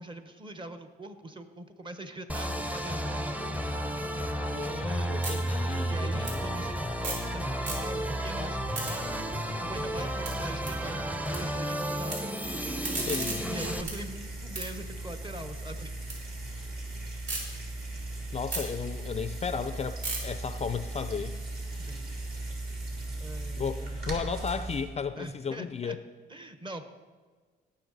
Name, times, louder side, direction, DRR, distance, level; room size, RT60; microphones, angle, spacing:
voice 1, 0.0-3.4 5.9-6.7 7.0-9.1 9.6-12.7 13.5-15.9 21.8-22.1 23.2-24.0 25.2-26.0 26.3-26.9, right 1 dB, 25° right, 9 dB, 1.1 m, -42 dB
sound 1, 2.3-13.8, right 1 dB, 5° right, 0.8 m, -32 dB
sound 2, 4.3-7.3 7.6-8.2 8.5-11.4 11.7-12.2 12.6-16.2 16.6-17.4 17.9-22.0, right 2 dB, 65° right, 4.1 m, -40 dB
voice 2, 4.5-6.4 8.5-8.9 12.9-13.5 18.3-21.4 23.6-26.0, left 6 dB, 35° left, 12 dB, 0.4 m, -34 dB
sound 3, 12.4-24.8, right 2 dB, 50° right, 3.4 m, -38 dB
18.0 x 6.6 x 4.1 m, 1.4 s
cardioid pair, 90°, 20 cm